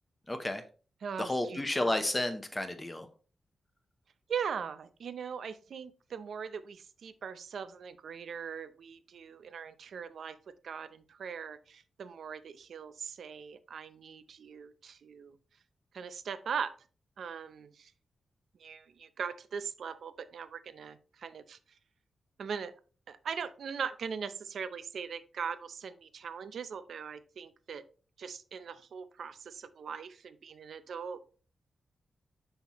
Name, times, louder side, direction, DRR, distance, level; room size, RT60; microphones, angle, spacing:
voice 1, 0.3-0.6 1.2-3.1, left 1 dB, 15° left, 8 dB, 0.7 m, -31 dB
voice 2, 1.0-2.0 4.3-10.4 10.6-15.4 15.9-16.7 17.2-17.9 18.6-21.6 22.4-22.7 23.1-27.9 28.2-31.3, right 6 dB, 70° right, 12 dB, 0.5 m, -40 dB
5.7 x 5.6 x 3.0 m, 0.37 s
wide cardioid pair, 170°, 0 cm